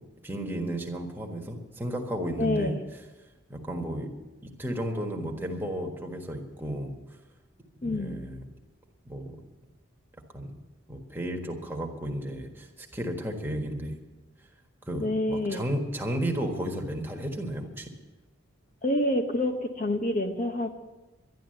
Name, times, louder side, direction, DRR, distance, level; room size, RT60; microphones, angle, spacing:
voice 1, 0.2-2.7 3.5-4.1 4.4-6.9 7.8-8.4 9.0-9.4 10.3-10.5 10.9-13.9 14.8-17.9, equal, 10° right, 1 dB, 1.5 m, -33 dB
voice 2, 2.4-2.7 7.8-8.2 15.0-15.6 18.8-20.8, left 1 dB, 40° left, 5 dB, 0.9 m, -27 dB
11.5 x 11.5 x 7.8 m, 1.1 s
head